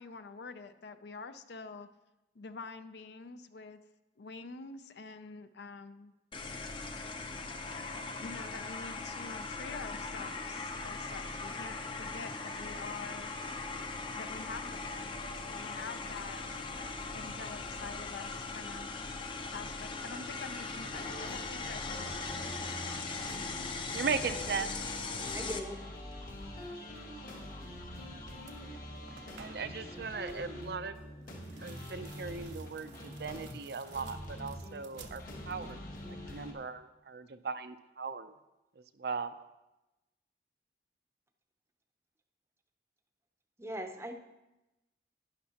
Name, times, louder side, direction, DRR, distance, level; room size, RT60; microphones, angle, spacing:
voice 1, 0.0-1.9 2.4-3.8 4.2-6.1 8.2-13.3 14.2-16.6 17.1-18.9 19.5-22.5, left 4 dB, 70° left, 11 dB, 0.5 m, -46 dB
sound 1, 6.3-25.6, left 3 dB, 30° left, 0.6 m, -40 dB
sound 2, 20.9-36.5, left 1 dB, 50° left, 1.5 m, -45 dB
voice 2, 23.9-24.8 29.4-31.0 31.6-38.3 38.8-39.3, right 5 dB, 60° right, 11 dB, 0.5 m, -38 dB
voice 3, 25.3-25.8 43.6-44.1, right 1 dB, 15° right, 6 dB, 0.6 m, -39 dB
sound 3, 27.9-28.1 28.4-29.9 31.2-35.8 36.1-36.7, right 6 dB, 85° right, 0.9 m, -56 dB
11.5 x 10.0 x 2.9 m, 1.0 s
head